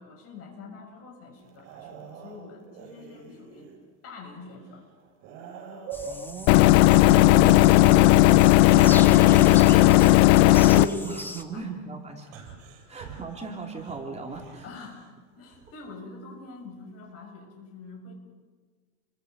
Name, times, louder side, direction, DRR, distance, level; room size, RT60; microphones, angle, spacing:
voice 1, 0.0-3.7 4.0-4.8 11.5-11.7 12.9-13.1 14.6-18.1, left 3 dB, 40° left, 1 dB, 7.4 m, -45 dB
sound 1, 1.4-3.8 4.3-6.2 7.1-9.9 10.4-11.0 12.2-15.1 15.5-15.9 17.0-17.1, right 5 dB, 60° right, 8.0 m, -41 dB
sound 2, 5.9-11.4, left 1 dB, 5° left, 1.3 m, -40 dB
voice 2, 6.0-9.5 10.4-12.4 12.9-14.7, right 4 dB, 15° right, 1 dB, 3.1 m, -39 dB
sound 3, 6.5-10.9, left 17 dB, 65° left, 0.8 m, -16 dB
30.0 x 24.0 x 5.4 m, 1.5 s
supercardioid pair, 135°, 37 cm